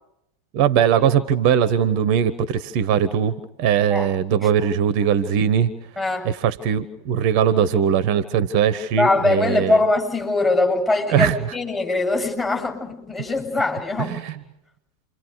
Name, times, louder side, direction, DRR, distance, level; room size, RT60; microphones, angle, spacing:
voice 1, 0.5-5.7 6.2-9.8 11.1-11.4 14.0-14.3, right 8 dB, 45° right, 15 dB, 1.1 m, -20 dB
voice 2, 6.0-6.3 9.0-14.1, left 2 dB, 15° left, 1 dB, 7.3 m, -22 dB
29.0 x 25.0 x 6.7 m, 0.81 s
figure-of-eight pair, 90°, 0 cm